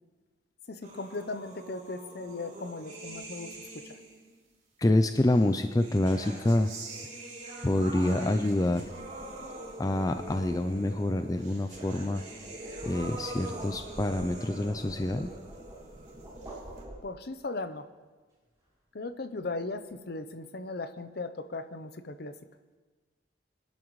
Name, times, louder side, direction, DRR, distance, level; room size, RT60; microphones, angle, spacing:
voice 1, 0.7-3.5 17.0-17.9 18.9-22.3, left 3 dB, 55° left, 11 dB, 0.7 m, -37 dB
sound 1, 0.8-4.3 5.3-16.8, right 2 dB, 40° right, 3.6 m, -44 dB
sound 2, 3.3-3.4 8.5-17.4, right 1 dB, 15° right, 4.9 m, -47 dB
voice 2, 4.8-6.7 7.6-8.9 9.8-12.2 12.8-15.3, left 1 dB, 20° left, 8 dB, 0.4 m, -27 dB
24.0 x 11.0 x 3.2 m, 1.4 s
head